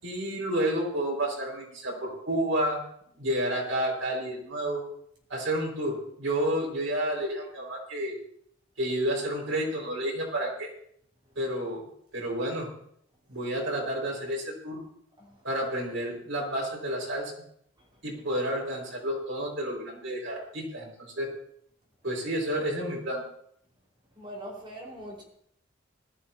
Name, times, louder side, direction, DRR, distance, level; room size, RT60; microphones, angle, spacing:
voice 1, 0.0-2.8 3.2-4.8 5.3-8.1 8.8-10.7 11.4-11.8 12.1-12.7 13.3-14.8 15.4-17.4 18.0-20.9 21.2-21.3 22.0-23.2, right 1 dB, 85° right, -1 dB, 5.5 m, -30 dB
voice 2, 24.1-25.2, equal, 25° right, -3 dB, 5.0 m, -41 dB
20.0 x 13.5 x 3.0 m, 0.67 s
head